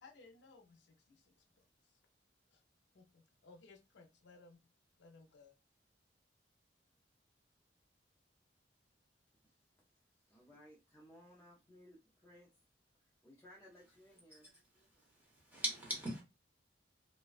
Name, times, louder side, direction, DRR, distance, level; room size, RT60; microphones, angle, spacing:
voice 1, 0.0-2.0 2.5-2.6 2.9-4.6 5.0-5.5, left 3 dB, 75° left, 0.4 m, -61 dB
voice 2, 9.4-12.5 13.0-14.5, equal, 15° left, 0.4 m, -61 dB
voice 3, 14.7-16.2, right 1 dB, 10° right, 1.0 m, -41 dB
2.4 x 2.1 x 2.3 m
head